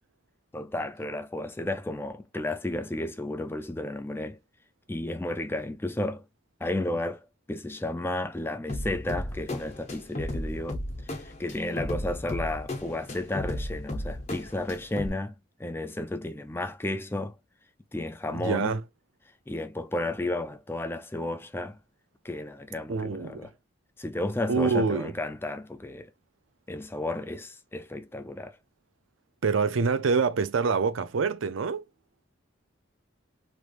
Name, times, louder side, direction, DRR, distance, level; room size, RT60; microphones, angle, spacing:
voice 1, 0.5-4.4 4.9-6.2 6.6-15.3 15.6-17.4 17.9-18.7 19.5-21.8 22.2-23.5 24.0-26.1 26.7-28.6, left 1 dB, 10° left, 0.3 m, -33 dB
sound 1, 8.7-15.1, left 1 dB, 35° left, 0.8 m, -35 dB
voice 2, 18.3-18.8 22.9-23.5 24.5-25.1 29.4-31.8, right 4 dB, 75° right, 0.5 m, -26 dB
3.3 x 3.0 x 2.4 m
head